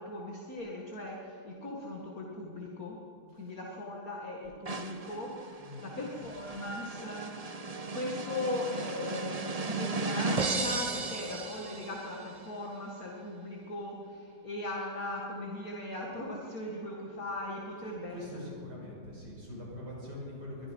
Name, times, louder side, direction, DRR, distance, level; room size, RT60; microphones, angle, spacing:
voice 1, 0.0-3.0 3.3-7.4 7.9-18.5, left 1 dB, 50° left, -2 dB, 2.5 m, -39 dB
sound 1, 4.7-12.2, right 3 dB, 30° right, 0.7 m, -35 dB
voice 2, 5.6-5.9 18.1-20.7, left 1 dB, 60° right, -4 dB, 6.9 m, -43 dB
23.0 x 22.0 x 5.5 m, 2.6 s
omnidirectional pair, 2.1 m